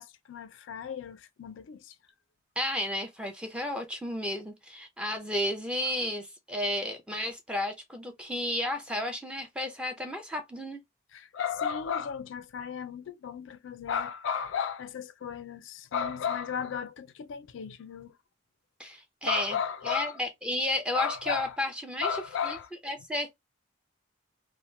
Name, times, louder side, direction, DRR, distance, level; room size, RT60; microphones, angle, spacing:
voice 1, 0.0-1.9 11.1-18.1 19.2-20.2 20.9-21.6 22.0-22.7, left 7 dB, 70° left, 0.3 m, -34 dB
voice 2, 2.6-10.8 18.8-19.6 19.8-22.1 22.4-22.6 22.8-23.3, left 1 dB, 5° right, 0.5 m, -32 dB
2.8 x 2.0 x 3.0 m
head